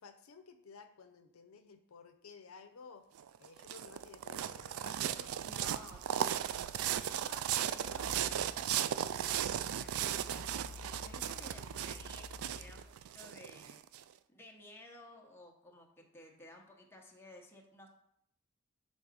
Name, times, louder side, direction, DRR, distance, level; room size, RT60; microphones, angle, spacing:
voice 1, 0.0-3.1 3.4-5.4, left 5 dB, 85° left, 8 dB, 0.6 m, -55 dB
sound 1, 3.2-14.0, right 10 dB, 90° right, 0.3 m, -36 dB
voice 2, 5.4-8.8 9.2-13.8 14.3-17.9, left 1 dB, 10° left, 0 dB, 0.9 m, -56 dB
sound 2, 7.8-12.8, left 3 dB, 35° right, 1.0 m, -51 dB
6.1 x 3.8 x 5.1 m, 0.72 s
head